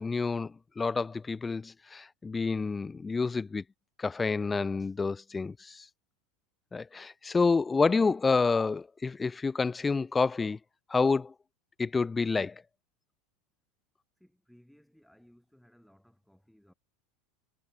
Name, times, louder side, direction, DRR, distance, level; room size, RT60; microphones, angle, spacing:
voice 1, 0.0-3.6 4.0-5.8 6.7-10.6 10.9-11.3 11.8-12.5, left 4 dB, 20° left, 0.4 m, -28 dB
voice 2, 14.2-16.7, equal, ahead, 6.4 m, -61 dB
hypercardioid pair, 80°, 0 cm